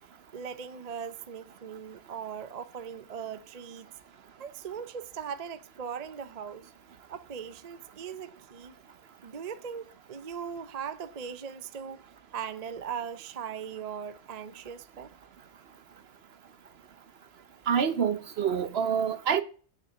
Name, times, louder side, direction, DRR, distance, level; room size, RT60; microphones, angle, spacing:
voice 1, 0.3-3.9 4.4-6.6 7.1-8.7 9.2-12.0 12.3-15.1, right 7 dB, 40° right, 0.6 m, -39 dB
voice 2, 17.7-19.4, right 7 dB, 60° right, 1.0 m, -26 dB
7.7 x 6.4 x 8.0 m
omnidirectional pair, 1.3 m